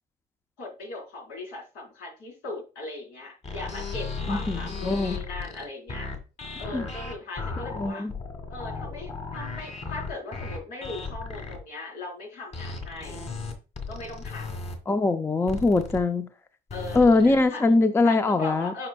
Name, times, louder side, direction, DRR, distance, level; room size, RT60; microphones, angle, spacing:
voice 1, 0.6-6.1 6.6-8.1 8.5-13.2 13.9-14.5 16.7-17.6 18.0-18.9, left 2 dB, 85° left, 3.9 m, -39 dB
sound 1, 3.4-11.6 12.5-14.7 15.5-16.0 16.7-17.4, left 4 dB, 40° left, 2.0 m, -35 dB
voice 2, 4.3-5.2 6.7-6.9 7.7-8.1 14.9-16.3 16.9-18.9, left 3 dB, 15° left, 0.5 m, -22 dB
8.7 x 5.3 x 2.2 m
cardioid pair, 110°, 17 cm